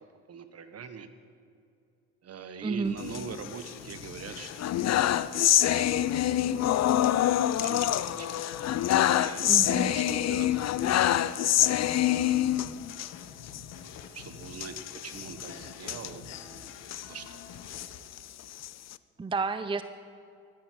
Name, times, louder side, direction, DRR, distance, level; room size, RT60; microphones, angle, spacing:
voice 1, 0.3-1.1 2.2-4.8 5.3-5.9 6.5-6.6 7.6-7.9 8.2-8.3 9.1-11.1 12.1-12.4 14.1-16.8 17.1-17.4, right 6 dB, 55° right, 10 dB, 1.4 m, -43 dB
voice 2, 2.6-3.0 9.5-9.9 19.2-19.8, right 4 dB, 15° right, 11 dB, 0.6 m, -30 dB
sound 1, 2.8-18.0, left 6 dB, 85° left, 1.6 m, -48 dB
sound 2, 3.0-3.9 4.3-13.1 13.5-13.6 13.9-14.0 14.5-17.1 17.5-18.9, left 12 dB, 60° left, 0.6 m, -26 dB
14.5 x 10.5 x 9.4 m, 2.5 s
cardioid pair, 90°, 30 cm